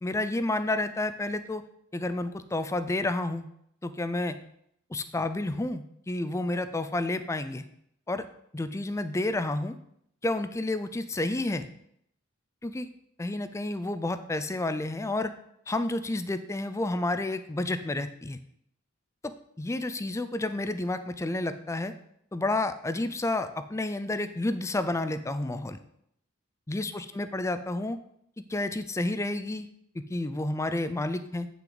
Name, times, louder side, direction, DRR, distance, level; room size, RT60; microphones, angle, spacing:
voice 1, 0.0-1.6 1.9-3.4 3.8-4.4 4.9-7.7 8.1-8.3 8.5-9.8 10.2-11.7 12.6-12.9 13.2-15.3 15.7-18.4 19.2-21.9 22.3-25.8 26.7-28.0 28.5-29.7 30.1-31.5, left 2 dB, 15° left, 11 dB, 0.4 m, -30 dB
8.6 x 5.8 x 3.9 m, 0.72 s
head